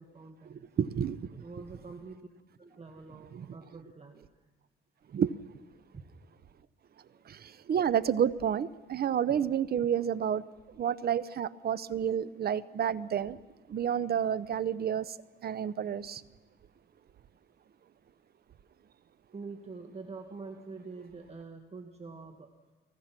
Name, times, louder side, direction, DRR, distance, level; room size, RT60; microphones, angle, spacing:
voice 1, 0.0-0.6 1.3-2.2 2.6-4.3 5.9-6.0 19.3-22.5, right 4 dB, 30° right, 5 dB, 1.8 m, -46 dB
voice 2, 0.8-1.3 3.3-3.5 5.1-5.3 7.3-10.4 10.8-13.4 13.7-15.1 15.4-16.2, right 8 dB, 50° right, 17 dB, 0.8 m, -30 dB
29.5 x 19.5 x 6.0 m, 1.3 s
cardioid pair, 90°, 20 cm